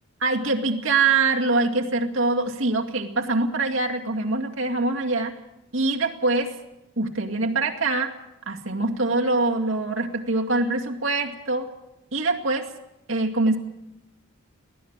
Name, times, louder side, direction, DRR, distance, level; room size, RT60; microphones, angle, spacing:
voice 1, 0.2-5.4 5.7-6.6 7.0-8.1 8.5-11.7 12.1-12.7 13.1-13.6, right 3 dB, 65° right, 2 dB, 2.3 m, -24 dB
23.0 x 17.0 x 7.4 m, 0.89 s
head